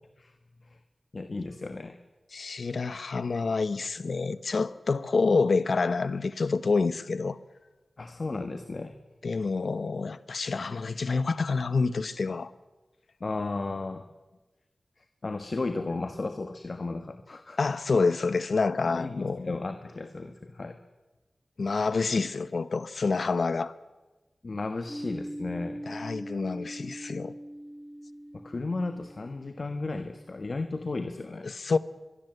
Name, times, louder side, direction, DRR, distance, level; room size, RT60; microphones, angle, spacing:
voice 1, 1.1-2.0 8.0-9.0 13.2-14.0 15.0-17.6 18.9-20.8 24.4-25.8 28.3-31.5, left 3 dB, 55° left, 1.5 m, -34 dB
voice 2, 2.3-7.4 9.2-12.5 17.6-19.6 21.6-23.7 25.9-27.3 31.4-31.8, left 4 dB, 80° left, 1.0 m, -27 dB
sound 1, 24.9-30.4, equal, ahead, 2.9 m, -42 dB
23.5 x 23.5 x 8.0 m
wide cardioid pair, 65°, 0 cm